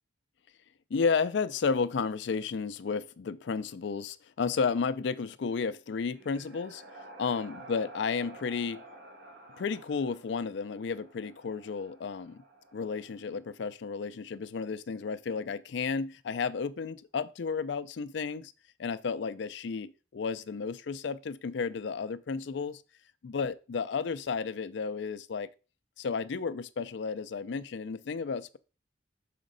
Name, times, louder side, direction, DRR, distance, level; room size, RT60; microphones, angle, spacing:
voice 1, 0.9-6.8 7.2-8.8 9.6-12.4 12.7-18.5 18.8-22.8 23.2-25.5 26.0-28.6, left 5 dB, 65° left, 0.4 m, -32 dB
sound 1, 5.8-13.5, right 2 dB, 80° right, 1.8 m, -51 dB
6.2 x 5.0 x 3.9 m
head